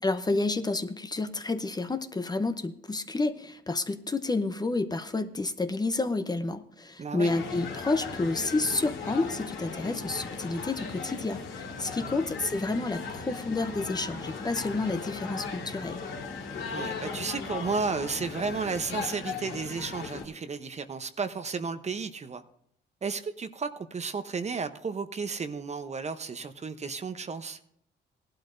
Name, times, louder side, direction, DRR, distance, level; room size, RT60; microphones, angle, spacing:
voice 1, 0.0-16.0, left 3 dB, 20° left, 9 dB, 0.8 m, -30 dB
voice 2, 7.0-7.3 12.0-12.2 16.7-22.4 23.0-27.6, right 5 dB, 35° right, 9 dB, 0.8 m, -33 dB
sound 1, 7.2-20.2, left 5 dB, 75° left, 2.5 m, -37 dB
17.0 x 12.0 x 2.6 m, 0.71 s
cardioid pair, 90°, 20 cm